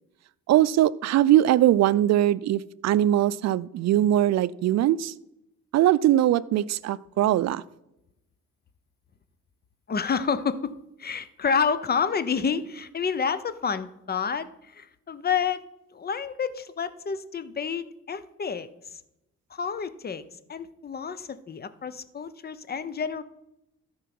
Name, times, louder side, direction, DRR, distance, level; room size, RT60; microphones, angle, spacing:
voice 1, 0.5-5.1 5.7-7.6, right 13 dB, 60° right, 19 dB, 0.5 m, -21 dB
voice 2, 9.9-15.6 15.9-18.7 19.5-20.2 20.5-23.2, left 6 dB, 30° left, 14 dB, 0.7 m, -29 dB
13.0 x 4.7 x 5.9 m, 0.87 s
cardioid pair, 90°, 30 cm